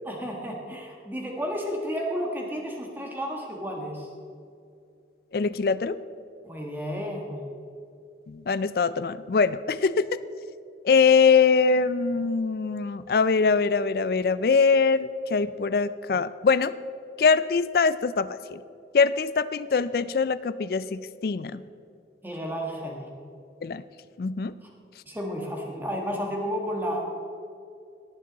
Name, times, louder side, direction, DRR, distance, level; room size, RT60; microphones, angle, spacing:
voice 1, 0.0-4.1 6.4-7.4 22.2-23.1 24.6-24.7 25.1-27.1, equal, 10° right, 0 dB, 1.5 m, -32 dB
voice 2, 5.3-6.0 8.3-10.1 10.8-16.7 17.2-18.6 18.9-21.6 23.6-23.8 24.2-24.5, left 5 dB, 55° left, 15 dB, 0.4 m, -23 dB
18.5 x 7.7 x 4.0 m, 2.5 s
head